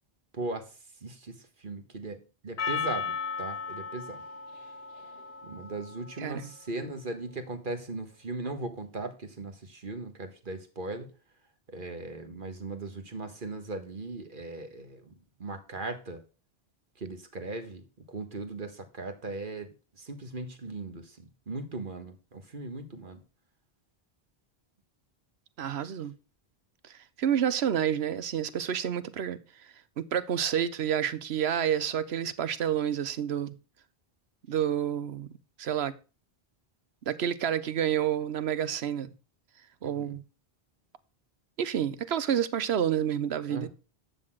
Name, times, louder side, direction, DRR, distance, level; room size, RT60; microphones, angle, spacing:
voice 1, 0.3-2.2 2.4-4.2 5.4-11.1 11.7-15.1 15.4-16.2 17.0-23.2 39.8-40.2 43.5-43.7, right 2 dB, 55° right, 1.6 m, -38 dB
Percussion, 2.6-7.1, left 5 dB, 75° left, 1.4 m, -37 dB
voice 2, 6.2-6.5 25.6-26.1 26.8-26.9 27.2-29.4 30.0-33.5 34.5-35.3 35.6-35.9 37.1-39.1 39.8-40.2 41.6-43.7, right 9 dB, 85° right, 1.1 m, -29 dB
12.0 x 4.1 x 7.7 m
omnidirectional pair, 1.0 m